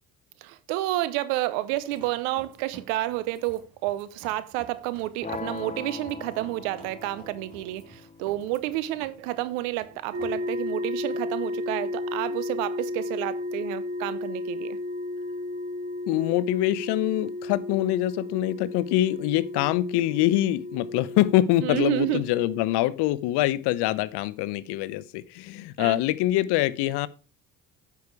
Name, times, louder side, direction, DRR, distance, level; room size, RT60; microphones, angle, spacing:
voice 1, 0.4-14.8 21.6-22.3 25.8-26.0, right 15 dB, 80° right, 0.9 m, -30 dB
sound 1, 1.7-12.4, right 5 dB, 55° right, 2.8 m, -52 dB
sound 2, 5.2-11.3, left 4 dB, 20° left, 0.7 m, -42 dB
sound 3, 10.1-22.6, left 2 dB, 35° right, 3.5 m, -33 dB
voice 2, 16.1-27.1, left 15 dB, 70° left, 0.8 m, -24 dB
9.5 x 6.0 x 4.6 m
hypercardioid pair, 60°, 42 cm